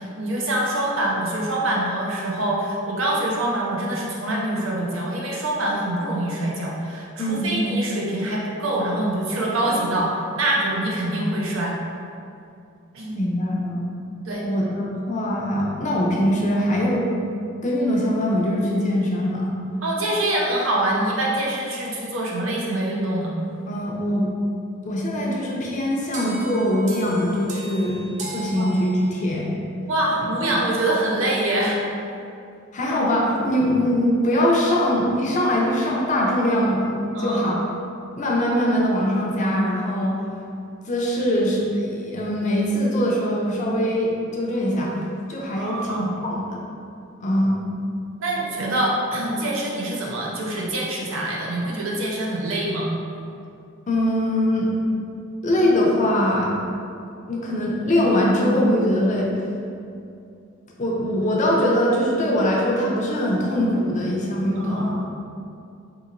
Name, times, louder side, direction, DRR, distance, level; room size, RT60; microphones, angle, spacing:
voice 1, 0.0-11.7 12.9-13.2 14.3-14.4 19.8-23.3 28.6-28.7 29.9-31.8 37.1-37.5 45.5-46.1 48.2-52.9 64.6-65.1, right 1 dB, 75° right, -3 dB, 0.7 m, -25 dB
voice 2, 7.2-7.6 13.1-13.9 14.4-17.1 17.6-19.6 20.9-21.0 23.7-24.2 24.8-29.5 30.2-30.4 32.7-36.9 37.2-37.5 38.2-40.1 40.9-45.0 45.3-46.6 47.2-47.6 53.9-54.7 55.4-56.5 57.3-59.3 60.8-65.0, equal, 35° left, -3 dB, 0.5 m, -22 dB
sound 1, 26.1-29.4, equal, 35° right, 0.4 m, -35 dB
3.9 x 2.8 x 2.5 m, 2.5 s
head